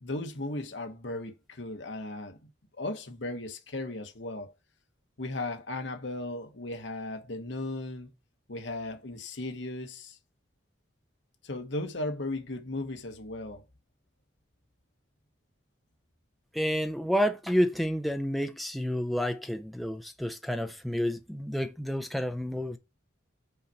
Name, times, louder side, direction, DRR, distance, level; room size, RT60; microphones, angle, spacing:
voice 1, 0.0-2.4 2.8-4.5 5.2-8.1 8.5-10.2 11.4-13.6, left 2 dB, 70° left, 1.2 m, -36 dB
voice 2, 16.5-22.8, equal, ahead, 0.5 m, -29 dB
5.6 x 4.6 x 4.2 m
head